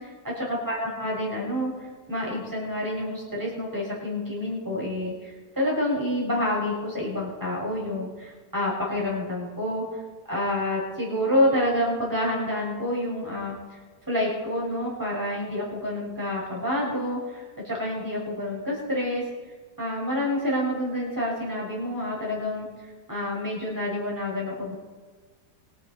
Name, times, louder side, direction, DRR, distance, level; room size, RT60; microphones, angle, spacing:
voice 1, 0.0-10.0 10.3-13.5 14.1-19.2 19.8-22.7 23.1-24.7, left 1 dB, 10° right, -4 dB, 6.3 m, -28 dB
24.5 x 10.0 x 4.5 m, 1.4 s
omnidirectional pair, 1.8 m